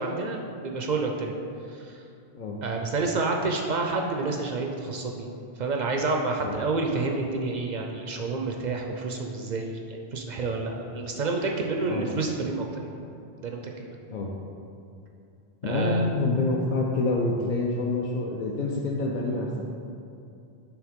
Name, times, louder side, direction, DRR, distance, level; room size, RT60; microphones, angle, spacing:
voice 1, 0.0-1.3 1.7-1.9 2.6-5.3 5.6-12.9 13.4-13.6 15.6-16.1, right 3 dB, 55° right, 2 dB, 0.5 m, -29 dB
voice 2, 15.6-19.7, left 2 dB, 55° left, -2 dB, 0.6 m, -27 dB
6.2 x 3.4 x 5.0 m, 2.6 s
omnidirectional pair, 1.1 m